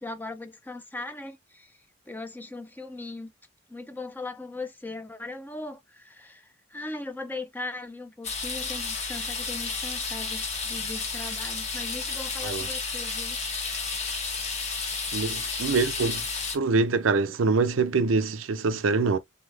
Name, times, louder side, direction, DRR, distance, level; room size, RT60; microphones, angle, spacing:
voice 1, 0.0-1.8 2.1-3.3 3.7-13.4, left 2 dB, 10° left, 0.5 m, -39 dB
sound 1, 8.2-16.6, left 4 dB, 35° left, 1.1 m, -32 dB
voice 2, 15.1-16.2 16.5-19.2, right 4 dB, 90° right, 0.5 m, -24 dB
3.8 x 3.5 x 3.2 m
head